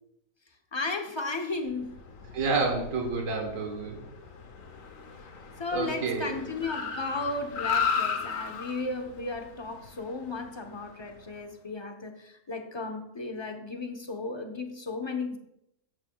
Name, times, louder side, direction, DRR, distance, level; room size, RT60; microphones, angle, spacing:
voice 1, 0.7-1.9 5.6-15.4, left 3 dB, 25° left, 4 dB, 0.7 m, -34 dB
Car, 1.8-11.3, left 6 dB, 60° left, 1.3 m, -36 dB
voice 2, 2.3-4.0 5.7-6.4, right 4 dB, 60° right, 1 dB, 1.7 m, -29 dB
12.5 x 8.0 x 2.3 m, 0.81 s
omnidirectional pair, 1.6 m